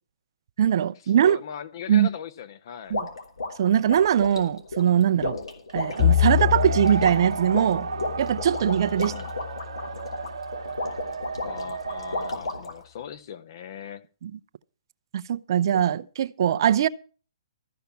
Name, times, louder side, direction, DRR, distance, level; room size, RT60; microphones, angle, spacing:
voice 1, 0.6-1.4 1.9-2.1 2.9-3.1 3.6-5.4 5.7-7.9 8.2-9.1 14.2-14.3 15.1-16.9, right 9 dB, 55° right, 0.6 m, -21 dB
voice 2, 1.2-3.0 8.9-9.3 11.4-14.0, left 8 dB, 50° left, 1.1 m, -39 dB
sound 1, 2.9-12.8, left 3 dB, 80° left, 3.2 m, -33 dB
sound 2, 5.8-12.3, right 5 dB, 75° right, 1.2 m, -34 dB
Bowed string instrument, 6.0-10.4, left 10 dB, 25° left, 0.6 m, -27 dB
14.0 x 5.7 x 8.5 m
hypercardioid pair, 135°, 3 cm